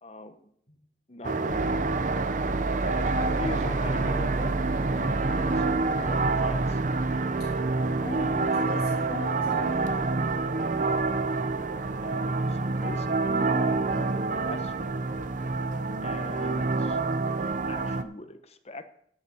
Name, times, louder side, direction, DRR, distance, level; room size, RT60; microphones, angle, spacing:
voice 1, 0.0-0.5 1.1-1.8 2.1-2.4 2.8-6.8 12.0-15.2 16.0-17.0 17.7-18.9, left 2 dB, 35° left, 9 dB, 1.0 m, -42 dB
sound 1, 1.2-18.0, right 3 dB, 45° right, 0.7 m, -27 dB
voice 2, 8.0-10.0, left 1 dB, 55° left, -5 dB, 3.0 m, -39 dB
10.5 x 6.5 x 7.8 m, 0.67 s
head